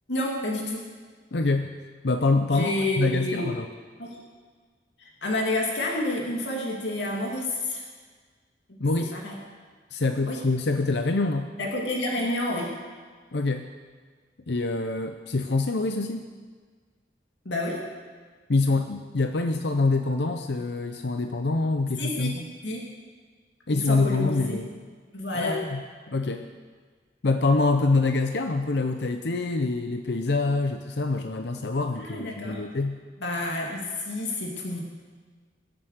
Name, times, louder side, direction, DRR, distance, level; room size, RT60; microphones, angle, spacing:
voice 1, 0.1-0.8 2.5-3.5 4.0-4.2 5.0-7.8 8.7-8.8 9.1-9.4 10.3-10.4 11.6-12.7 17.4-17.8 22.0-22.3 22.6-22.8 23.7-24.6 25.1-25.6 32.0-32.6 33.2-34.8, left 1 dB, 90° left, -2 dB, 2.5 m, -29 dB
voice 2, 1.3-1.7 2.0-3.7 8.8-9.1 9.9-11.5 13.3-13.7 14.5-16.3 18.5-22.5 23.7-24.7 25.3-25.8 26.1-26.5 27.2-33.0, left 3 dB, 75° left, 6 dB, 0.7 m, -25 dB
22.0 x 8.0 x 6.6 m, 1.5 s
head